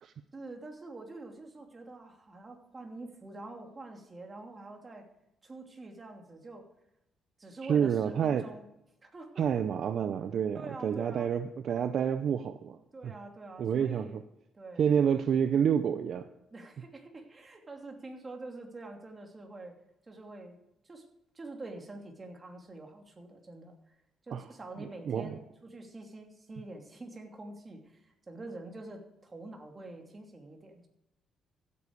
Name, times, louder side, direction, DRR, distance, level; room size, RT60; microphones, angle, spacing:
voice 1, 0.3-5.1 5.4-6.7 7.4-8.7 9.0-9.5 10.5-11.3 12.9-14.2 14.5-14.8 16.5-19.8 20.1-20.6 20.8-21.1 21.3-23.9 24.2-30.9, right 2 dB, 30° right, 3 dB, 2.7 m, -46 dB
voice 2, 7.6-8.5 9.4-12.8 13.6-14.2 14.8-16.3 24.3-24.4 24.8-25.4, right 8 dB, 65° right, 10 dB, 0.6 m, -28 dB
15.0 x 8.7 x 4.8 m, 0.85 s
cardioid pair, 90°, 0 cm